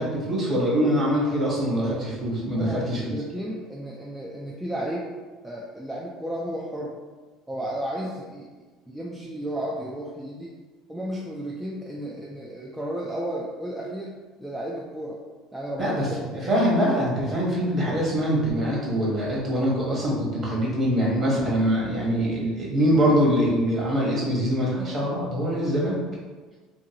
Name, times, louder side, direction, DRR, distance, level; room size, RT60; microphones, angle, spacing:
voice 1, 0.0-3.1 15.8-16.1 16.3-26.0, equal, 35° right, -4 dB, 1.0 m, -23 dB
voice 2, 2.5-5.1 5.4-7.0 7.5-8.5 8.9-10.5 10.9-14.1 14.4-15.2 15.5-16.0, right 1 dB, 5° right, -4 dB, 0.3 m, -33 dB
2.7 x 2.6 x 2.7 m, 1.3 s
cardioid pair, 125°, 0 cm